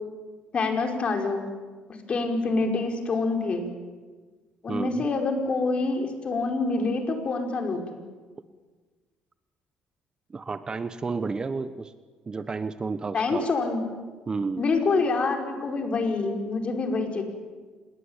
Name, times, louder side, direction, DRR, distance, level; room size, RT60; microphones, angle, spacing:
voice 1, 0.5-1.5 2.1-3.7 4.6-8.0 13.1-13.8 14.6-17.2, left 3 dB, 40° left, 4 dB, 5.1 m, -26 dB
voice 2, 4.7-5.0 10.3-11.9 12.3-13.5 14.3-14.6, right 4 dB, 30° right, 12 dB, 1.1 m, -31 dB
26.5 x 21.5 x 9.0 m, 1.4 s
cardioid pair, 105°, 3 cm